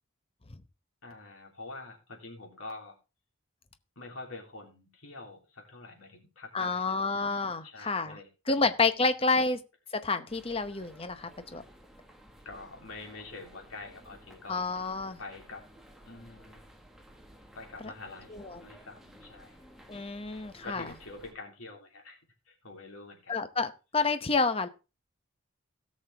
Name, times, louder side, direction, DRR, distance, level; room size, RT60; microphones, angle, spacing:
voice 1, 1.0-3.0 3.9-7.1 7.6-8.6 9.0-9.5 12.4-14.7 15.2-15.7 16.0-16.6 17.5-19.7 20.6-22.2 22.4-23.4, left 3 dB, 90° left, 1 dB, 3.2 m, -46 dB
voice 2, 6.5-8.2 8.5-9.6 10.0-11.6 14.5-15.2 18.3-18.6 19.9-20.9 23.3-24.7, left 3 dB, 25° left, 10 dB, 0.8 m, -29 dB
sound 1, 10.3-21.3, equal, ahead, 1.5 m, -55 dB
17.0 x 6.5 x 3.4 m, 0.30 s
head